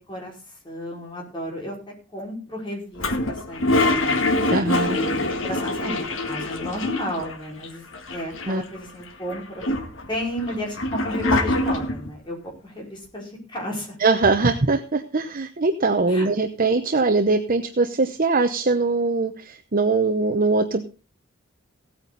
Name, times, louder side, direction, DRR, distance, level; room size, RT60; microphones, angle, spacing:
voice 1, 0.1-1.8 2.1-4.2 4.9-9.6 10.1-14.0 16.0-16.3, equal, 25° left, -1 dB, 5.1 m, -33 dB
Toilet flush, 3.0-7.3 7.6-7.7 7.9-8.8 9.3-12.1, left 2 dB, 65° left, 1.8 m, -24 dB
voice 2, 4.5-5.0 8.5-8.6 14.0-20.8, right 3 dB, 45° right, 7 dB, 0.9 m, -21 dB
17.0 x 8.9 x 4.0 m, 0.34 s
head